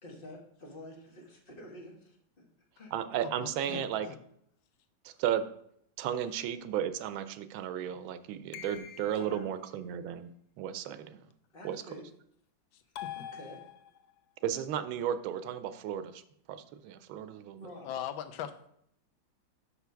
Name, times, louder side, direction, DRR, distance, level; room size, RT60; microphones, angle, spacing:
voice 1, 0.0-2.4 2.8-2.9 9.1-9.5 11.5-12.1 13.1-13.6 17.6-18.0, left 1 dB, 30° left, 0 dB, 1.3 m, -48 dB
voice 2, 2.9-4.1 5.0-5.5 6.0-10.3 10.6-11.2 11.6-11.8 14.4-16.2 16.5-17.7, right 9 dB, 90° right, 12 dB, 1.4 m, -34 dB
voice 3, 3.4-4.2 12.7-12.8 17.8-18.7, left 10 dB, 90° left, 11 dB, 1.4 m, -40 dB
sound 1, 8.5-9.5 13.0-14.2, left 10 dB, 70° left, 1.0 m, -44 dB
5.8 x 5.6 x 5.7 m, 0.70 s
omnidirectional pair, 2.1 m